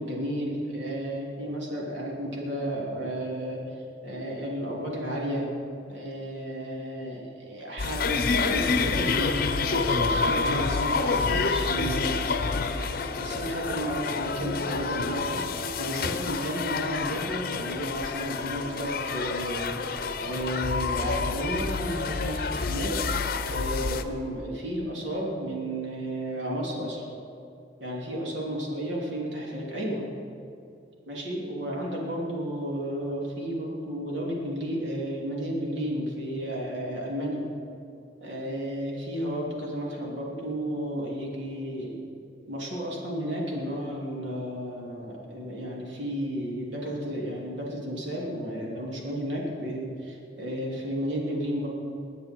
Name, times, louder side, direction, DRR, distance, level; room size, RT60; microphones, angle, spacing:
voice 1, 0.0-3.8 4.0-5.5 5.9-12.2 12.5-27.0 27.8-30.0 31.1-37.5 38.2-42.0 42.5-51.7, equal, 90° right, -3 dB, 3.0 m, -33 dB
sound 1, 7.8-24.0, left 4 dB, 50° left, 0.7 m, -28 dB
21.5 x 9.3 x 4.6 m, 2.6 s
head